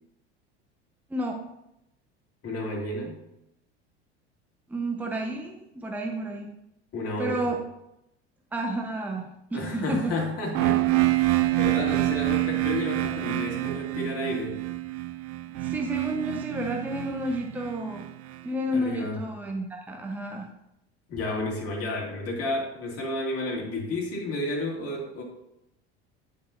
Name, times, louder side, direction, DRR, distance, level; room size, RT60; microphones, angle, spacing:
voice 1, 1.1-1.5 4.7-6.5 7.2-7.6 8.5-10.2 11.8-12.6 15.5-18.1 18.4-20.5, right 1 dB, 5° right, 1 dB, 0.8 m, -31 dB
voice 2, 2.4-3.2 6.9-7.4 9.5-14.6 18.7-19.2 21.1-25.2, left 2 dB, 45° left, -1 dB, 2.3 m, -31 dB
sound 1, 10.5-18.4, right 17 dB, 45° right, 0.4 m, -27 dB
8.7 x 5.2 x 2.6 m, 0.83 s
hypercardioid pair, 80°, 33 cm